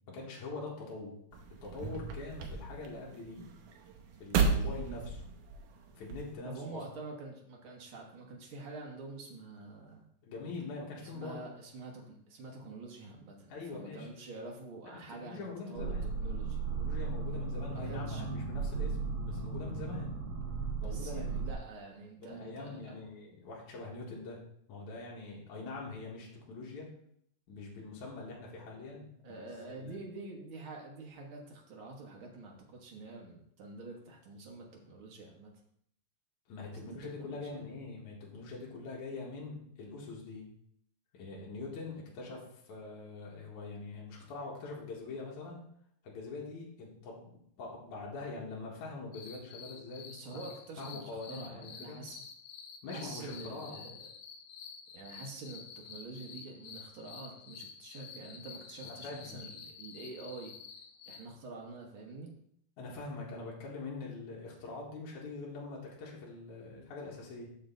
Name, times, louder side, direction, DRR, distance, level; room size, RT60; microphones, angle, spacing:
voice 1, 0.1-1.1 1.6-3.5 4.2-5.2 5.9-6.8 10.2-11.4 13.5-14.1 15.2-16.1 16.8-20.2 20.8-21.5 22.2-24.4 24.7-26.9 27.5-29.9 36.5-40.5 41.1-45.6 46.0-50.1 50.8-52.0 52.8-53.9 58.8-59.5 62.8-67.5, left 3 dB, 60° left, -4 dB, 2.9 m, -43 dB
sound 1, 1.3-6.3, right 5 dB, 70° right, 2.2 m, -34 dB
voice 2, 6.4-10.0 11.0-16.6 17.9-18.3 20.8-23.0 29.2-35.5 36.7-37.6 50.1-52.2 52.9-54.1 54.9-60.5 61.1-62.3, right 3 dB, 55° right, 0 dB, 1.5 m, -47 dB
sound 2, 15.8-21.6, right 4 dB, 90° right, 2.9 m, -36 dB
sound 3, 49.1-61.3, left 6 dB, 90° left, 2.5 m, -50 dB
7.0 x 6.5 x 3.9 m, 0.70 s
omnidirectional pair, 4.1 m